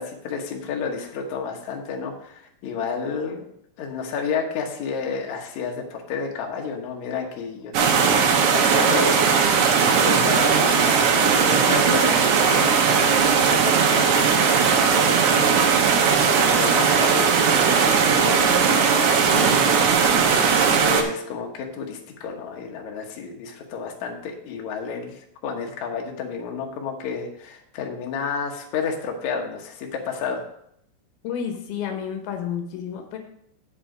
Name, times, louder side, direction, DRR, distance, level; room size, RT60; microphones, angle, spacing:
voice 1, 0.0-3.5 3.8-15.7 16.2-19.9 20.8-30.4, left 5 dB, 90° left, 1 dB, 1.6 m, -31 dB
sound 1, 7.7-21.0, right 6 dB, 75° right, 2.8 m, -18 dB
voice 2, 31.2-33.2, left 8 dB, 70° left, 4 dB, 2.5 m, -30 dB
7.9 x 7.1 x 4.9 m, 0.72 s
omnidirectional pair, 5.3 m